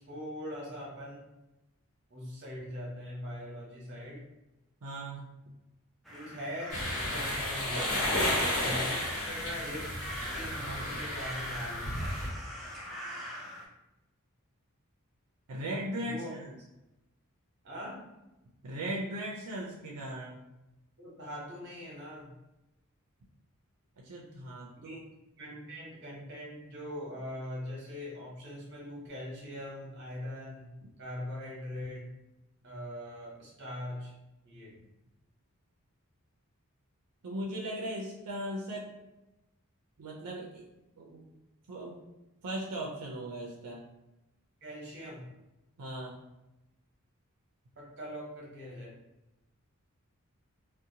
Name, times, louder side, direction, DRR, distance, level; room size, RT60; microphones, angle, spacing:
voice 1, 0.1-1.2 2.1-4.2 6.1-8.2 8.6-9.9 10.3-12.3 16.0-16.4 17.6-18.1 21.0-22.3 24.8-25.0 25.4-32.1 32.6-34.1 34.4-34.8 44.6-45.3 47.8-49.0, equal, 50° right, -3 dB, 0.9 m, -42 dB
voice 2, 4.8-5.3 15.5-16.5 18.6-20.4 24.0-25.0 37.2-38.9 40.0-40.6 41.0-41.3 41.7-42.0 42.4-43.8 45.8-46.2, right 1 dB, 85° right, -3 dB, 0.5 m, -38 dB
sound 1, 6.1-13.7, equal, ahead, 0.4 m, -41 dB
sound 2, 6.7-12.3, left 1 dB, 70° left, 1.0 m, -33 dB
2.6 x 2.1 x 2.7 m, 0.95 s
head